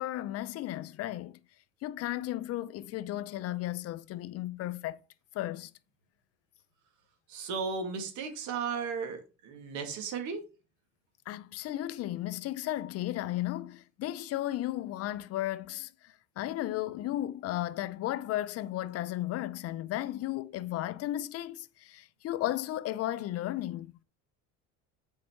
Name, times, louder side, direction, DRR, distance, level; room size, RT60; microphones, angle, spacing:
voice 1, 0.0-1.4 1.8-5.0 5.3-5.7 11.3-15.9 16.4-23.9, left 14 dB, 50° left, 0.6 m, -34 dB
voice 2, 7.3-10.4, right 5 dB, 65° right, 2.2 m, -35 dB
7.7 x 4.8 x 4.5 m
cardioid pair, 125°, 31 cm